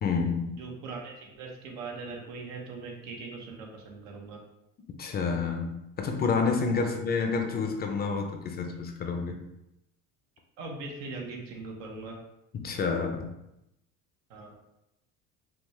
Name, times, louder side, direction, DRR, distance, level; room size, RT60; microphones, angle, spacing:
voice 1, 0.0-0.5 5.0-9.4 12.5-13.3, left 5 dB, 30° left, 4 dB, 0.5 m, -29 dB
voice 2, 0.5-4.4 6.8-6.9 10.6-12.2 14.3-14.5, right 3 dB, 80° right, 1 dB, 1.2 m, -40 dB
5.7 x 2.4 x 3.1 m, 0.86 s
cardioid pair, 130°, 33 cm